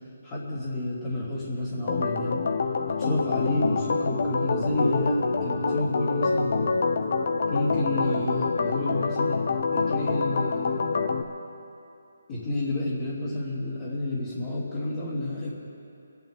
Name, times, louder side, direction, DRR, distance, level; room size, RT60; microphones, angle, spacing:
voice 1, 0.2-2.4 3.0-6.5 7.5-9.4 9.7-10.8 12.3-15.5, left 1 dB, 30° left, -10 dB, 3.0 m, -29 dB
Organ, 1.9-11.2, left 4 dB, 55° left, 0.8 m, -26 dB
27.0 x 11.5 x 3.6 m, 2.7 s
hypercardioid pair, 160°, 0 cm